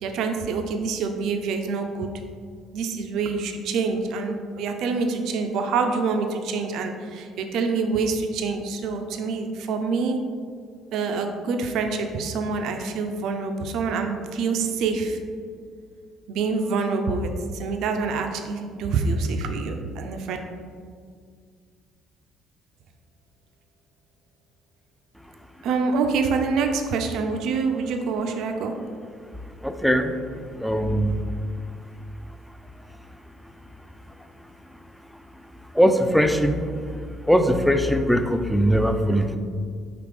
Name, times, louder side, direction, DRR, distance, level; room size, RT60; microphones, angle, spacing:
voice 1, 0.0-2.1 2.7-10.2 10.9-15.2 16.3-20.4 25.6-28.7, right 4 dB, 60° right, 5 dB, 0.4 m, -26 dB
voice 2, 29.6-30.1 30.6-31.2 35.8-36.6 37.3-39.4, equal, ahead, 8 dB, 0.4 m, -20 dB
5.0 x 2.9 x 3.4 m, 2.1 s
hypercardioid pair, 55°, 0 cm